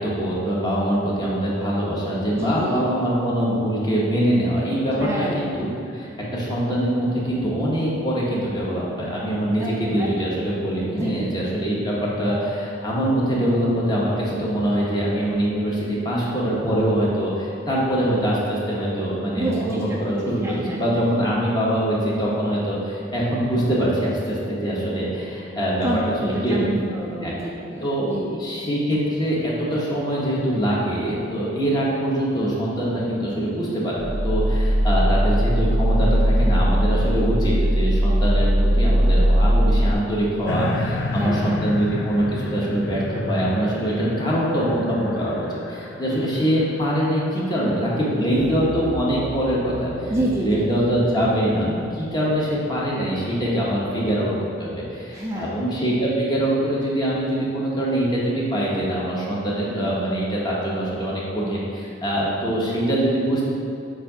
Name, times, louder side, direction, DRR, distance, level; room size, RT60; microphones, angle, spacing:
voice 1, 0.0-25.9 26.2-26.6 27.2-27.3 27.8-28.1 28.4-50.1 50.4-54.3 54.6-63.4, equal, 25° left, -6 dB, 1.2 m, -23 dB
voice 2, 2.3-2.8 5.0-5.5 9.6-10.4 10.9-11.3 19.4-20.0 20.3-20.8 25.8-28.4 41.1-41.6 50.1-50.9 55.1-55.6, right 1 dB, 15° right, -4 dB, 0.4 m, -28 dB
sound 1, 34.0-39.9, equal, 60° right, 0.6 m, -19 dB
sound 2, 40.5-47.8 48.4-48.5, left 2 dB, 65° left, 0.5 m, -31 dB
sound 3, 48.3-53.2, right 2 dB, 85° left, 1.2 m, -38 dB
7.6 x 2.7 x 4.9 m, 2.5 s
head